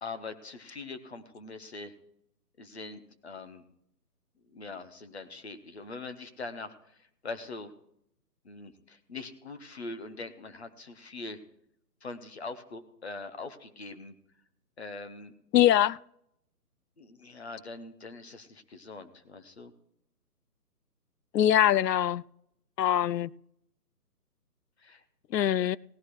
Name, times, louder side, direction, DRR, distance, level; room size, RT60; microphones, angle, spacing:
voice 1, 0.0-1.9 2.6-3.6 4.5-6.7 7.2-7.7 8.4-11.4 12.0-14.1 14.8-15.3 17.0-19.7 24.8-25.0, left 3 dB, 40° left, 1.1 m, -42 dB
voice 2, 15.5-16.0 21.3-22.2 22.8-23.3 25.3-25.8, left 11 dB, 80° left, 0.6 m, -23 dB
17.5 x 11.0 x 3.2 m
hypercardioid pair, 175°, 48 cm